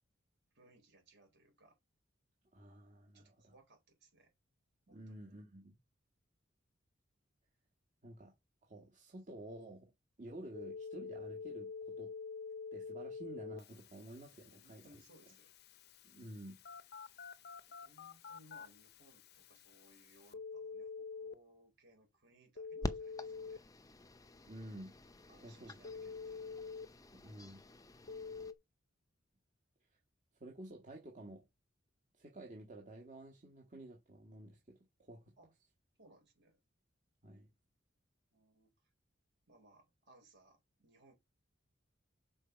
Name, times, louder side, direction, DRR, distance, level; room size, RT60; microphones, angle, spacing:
voice 1, 0.5-1.8 3.1-4.3 4.9-5.4 14.5-15.5 17.7-23.7 25.3-26.6 35.4-35.5 36.0-36.6 38.3-38.9 39.5-41.1, right 1 dB, 60° right, 4.3 m, -66 dB
voice 2, 2.5-3.5 4.9-5.8 8.0-8.3 8.6-9.9 10.2-12.1 12.7-15.0 16.0-16.6 24.4-24.9 25.4-25.8 27.1-27.6 30.4-31.4 32.1-35.2 37.2-37.5, right 1 dB, 40° right, 1.6 m, -51 dB
Telephone, 10.5-21.3 22.6-23.6 25.8-26.9 28.1-28.5, left 5 dB, 55° left, 0.7 m, -47 dB
sound 1, 22.8-28.5, left 1 dB, 20° left, 0.6 m, -48 dB
6.4 x 4.4 x 5.8 m
head